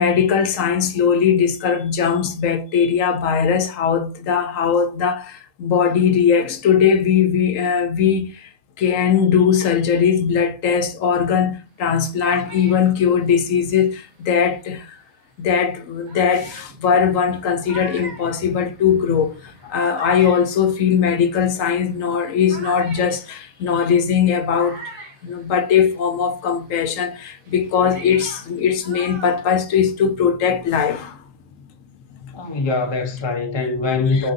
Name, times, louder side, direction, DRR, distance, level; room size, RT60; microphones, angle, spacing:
voice 1, 0.0-8.5 8.8-15.0 15.4-24.8 25.2-31.2 34.0-34.3, left 7 dB, 75° left, 1.0 m, -19 dB
sound 1, 11.8-14.8 15.5-15.6 16.1-26.1 26.4-30.1, right 2 dB, 90° right, 1.7 m, -41 dB
voice 2, 32.3-34.3, left 3 dB, 25° left, 0.6 m, -23 dB
4.5 x 3.8 x 2.5 m
omnidirectional pair, 1.4 m